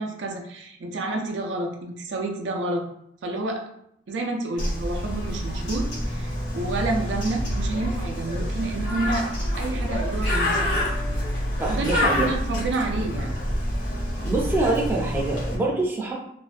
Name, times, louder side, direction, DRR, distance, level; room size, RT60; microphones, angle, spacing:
voice 1, 0.0-2.9 3.2-3.7 4.1-9.3 9.6-10.8 11.7-11.9 12.2-13.4, right 2 dB, 80° right, 2 dB, 0.4 m, -29 dB
Bird, 4.6-15.6, left 1 dB, 80° left, 1.1 m, -27 dB
voice 2, 11.6-12.2 14.2-16.1, right 2 dB, 10° right, -3 dB, 0.4 m, -25 dB
2.5 x 2.1 x 2.4 m, 0.74 s
head